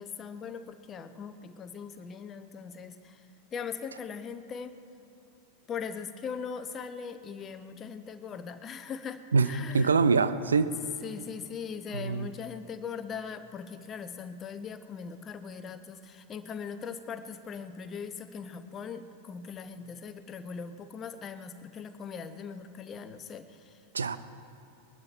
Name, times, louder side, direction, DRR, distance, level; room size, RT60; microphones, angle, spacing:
voice 1, 0.0-4.8 5.7-9.9 11.0-23.8, left 6 dB, 25° left, 9 dB, 0.8 m, -40 dB
voice 2, 9.7-10.7 11.9-12.3 23.9-24.2, right 4 dB, 70° right, 13 dB, 0.5 m, -24 dB
21.0 x 12.0 x 4.5 m, 2.8 s
figure-of-eight pair, 90°, 0 cm